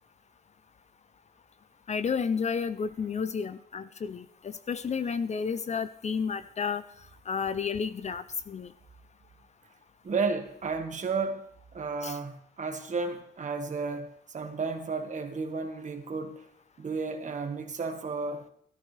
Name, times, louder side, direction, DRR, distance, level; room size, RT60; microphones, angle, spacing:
voice 1, 1.9-6.8 7.3-8.7 12.0-12.2, left 6 dB, 40° left, 0.5 m, -31 dB
voice 2, 10.0-11.5 11.7-14.1 14.3-16.4 16.8-18.4, right 4 dB, 45° right, 1.5 m, -32 dB
14.5 x 13.5 x 3.3 m
wide cardioid pair, 155°, 18 cm